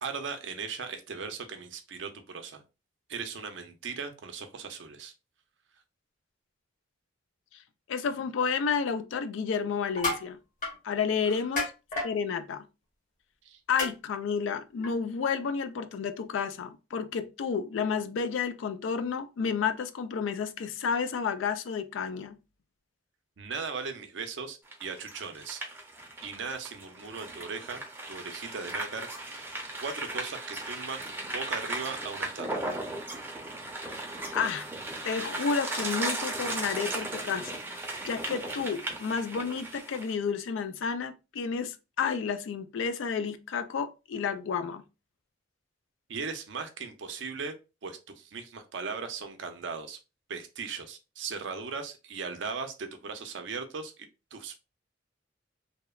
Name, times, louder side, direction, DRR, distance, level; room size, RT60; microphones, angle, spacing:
voice 1, 0.0-2.6 3.1-5.1 11.3-11.4 13.4-13.6 23.4-25.6 26.2-29.5 29.8-31.0 31.3-32.6 36.9-37.0 46.1-47.6 47.8-50.0 50.3-54.6, right 5 dB, 70° right, 0.5 m, -38 dB
voice 2, 7.9-10.4 10.8-11.7 12.0-12.7 13.7-22.4 33.8-34.7 35.0-37.6 38.0-44.8, left 6 dB, 80° left, 0.3 m, -31 dB
sound 1, 9.8-10.2 10.6-10.7 11.6-12.1 13.8-13.9 14.8-14.9, left 2 dB, 40° left, 0.9 m, -30 dB
sound 2, 24.7-40.1, right 2 dB, 10° right, 0.5 m, -36 dB
2.8 x 2.0 x 2.2 m
head